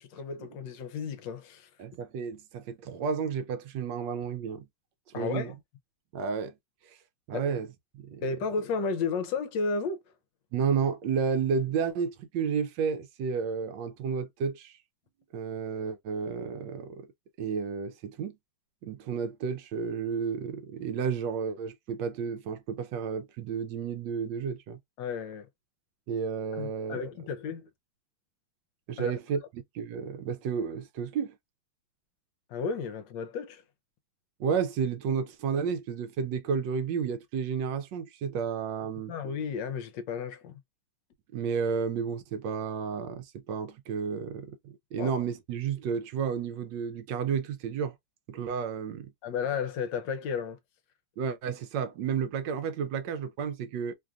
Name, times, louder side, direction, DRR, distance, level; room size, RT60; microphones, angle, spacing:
voice 1, 0.0-1.7 5.1-5.5 7.3-7.5 8.2-10.0 25.0-25.5 26.6-27.7 29.0-29.1 32.5-33.6 39.1-40.6 45.0-45.1 49.2-50.6, left 5 dB, 75° left, 1.2 m, -33 dB
voice 2, 1.8-4.6 5.1-5.5 6.1-6.5 6.8-7.0 7.3-7.7 7.9-8.2 10.5-14.8 15.3-17.1 17.4-18.4 18.8-24.8 26.1-27.1 28.9-31.3 34.4-39.1 41.3-47.9 48.3-49.1 51.2-53.9, right 6 dB, 75° right, 1.1 m, -32 dB
3.2 x 2.4 x 2.2 m
omnidirectional pair, 2.1 m